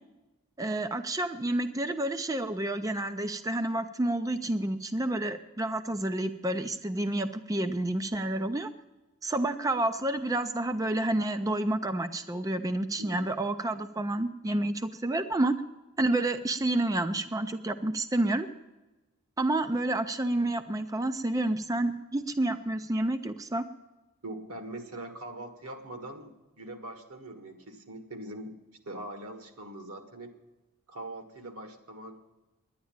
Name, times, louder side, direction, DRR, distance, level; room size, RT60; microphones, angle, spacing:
voice 1, 0.6-8.7 9.2-15.6 16.0-18.5 19.4-23.7, right 1 dB, 15° right, 9 dB, 0.4 m, -29 dB
voice 2, 24.2-28.6 28.8-30.3 30.9-32.2, right 1 dB, 90° right, 6 dB, 1.7 m, -42 dB
10.5 x 10.0 x 8.8 m, 1.1 s
head